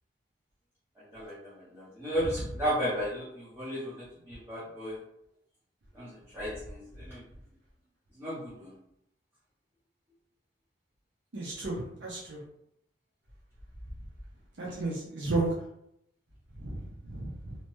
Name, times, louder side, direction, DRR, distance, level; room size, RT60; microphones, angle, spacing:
voice 1, 1.0-5.0 5.9-7.2 8.1-8.7, equal, 15° right, -10 dB, 0.7 m, -35 dB
voice 2, 11.3-12.4 14.6-15.5 16.6-17.6, right 2 dB, 70° right, -5 dB, 0.7 m, -33 dB
2.8 x 2.2 x 3.0 m, 0.77 s
head